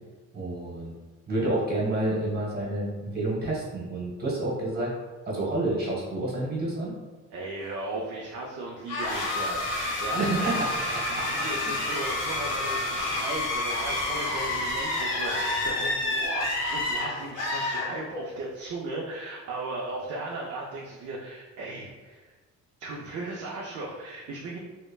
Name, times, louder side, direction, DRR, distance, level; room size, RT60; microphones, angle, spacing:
voice 1, 0.3-0.9 1.3-4.9 5.2-6.9 10.1-10.7 11.6-11.7, right 2 dB, 30° right, -4 dB, 1.2 m, -29 dB
voice 2, 7.3-22.3 22.8-24.6, right 2 dB, 55° right, -2 dB, 0.5 m, -36 dB
sound 1, 8.9-18.4, left 2 dB, 60° left, 0.8 m, -29 dB
3.1 x 2.1 x 2.3 m, 1.3 s
cardioid pair, 90°, 30 cm